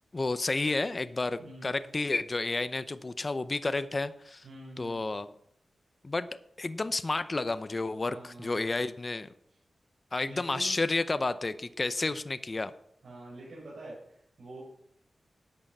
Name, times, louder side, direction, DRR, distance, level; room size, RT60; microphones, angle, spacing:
voice 1, 0.1-4.4 4.8-5.3 6.0-6.3 6.6-9.3 10.1-12.7, left 3 dB, 35° left, 12 dB, 0.6 m, -31 dB
voice 2, 1.4-1.8 4.4-5.0 8.1-8.6 10.2-10.8 13.0-14.6, right 2 dB, 75° right, -7 dB, 6.0 m, -46 dB
13.0 x 9.0 x 5.4 m, 0.73 s
wide cardioid pair, 85°, 0 cm